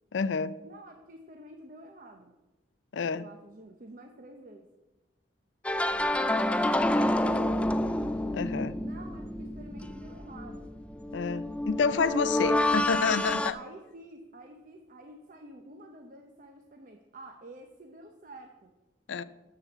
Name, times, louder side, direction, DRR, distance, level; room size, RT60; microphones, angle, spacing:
voice 1, 0.1-0.5 2.9-3.2 8.3-8.8 11.1-13.5 19.1-19.2, left 5 dB, 85° left, 16 dB, 0.4 m, -29 dB
voice 2, 0.6-2.4 3.1-4.7 5.9-7.8 8.8-10.7 12.2-12.4 13.1-18.7, right 1 dB, 45° right, 4 dB, 0.7 m, -49 dB
sound 1, 5.6-13.5, left 1 dB, 5° left, 0.3 m, -28 dB
7.2 x 6.9 x 7.1 m, 1.1 s
head